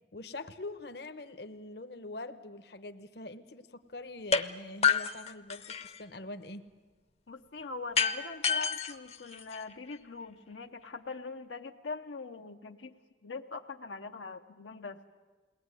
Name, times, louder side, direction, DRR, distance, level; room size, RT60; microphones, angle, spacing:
voice 1, 0.1-6.7, left 2 dB, 60° left, 9 dB, 1.0 m, -44 dB
sound 1, 4.3-4.5 4.8-6.0 8.0-9.9, left 6 dB, 35° left, 0.7 m, -29 dB
voice 2, 7.3-13.0 13.2-15.0, left 4 dB, 85° left, 4 dB, 0.9 m, -42 dB
22.0 x 18.0 x 9.7 m, 1.3 s
head